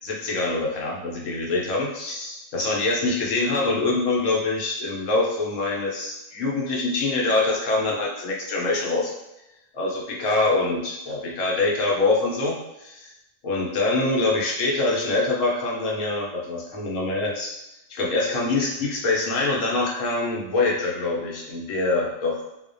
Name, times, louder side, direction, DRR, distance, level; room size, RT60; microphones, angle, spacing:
voice 1, 0.0-9.1 9.7-13.1 13.4-17.5 17.9-22.5, left 3 dB, 75° left, -2 dB, 1.0 m, -24 dB
2.4 x 2.1 x 2.5 m, 0.91 s
omnidirectional pair, 1.4 m